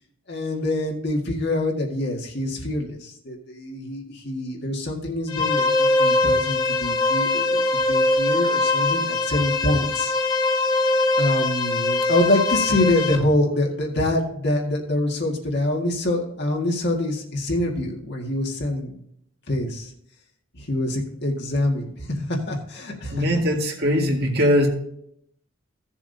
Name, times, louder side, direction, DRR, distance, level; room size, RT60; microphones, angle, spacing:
voice 1, 0.3-10.1 11.2-19.0 19.5-19.9 20.5-23.2, left 1 dB, 55° left, 0 dB, 1.9 m, -25 dB
sound 1, 5.3-13.1, left 2 dB, 25° left, 1.2 m, -22 dB
voice 2, 23.1-24.7, equal, 50° right, 0 dB, 1.9 m, -20 dB
16.0 x 7.2 x 2.8 m, 0.72 s
head